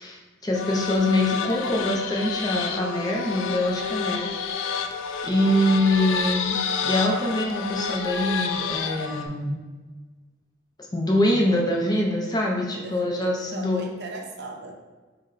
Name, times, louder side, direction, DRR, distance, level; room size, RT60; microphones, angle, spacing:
voice 1, 0.0-4.3 4.6-4.8 5.2-9.6 10.9-13.8, left 1 dB, 20° left, -1 dB, 0.5 m, -24 dB
sound 1, 0.5-9.3, left 6 dB, 80° left, 0.3 m, -29 dB
voice 2, 12.8-14.7, right 3 dB, 60° right, 1 dB, 0.5 m, -38 dB
4.2 x 2.1 x 3.8 m, 1.3 s
head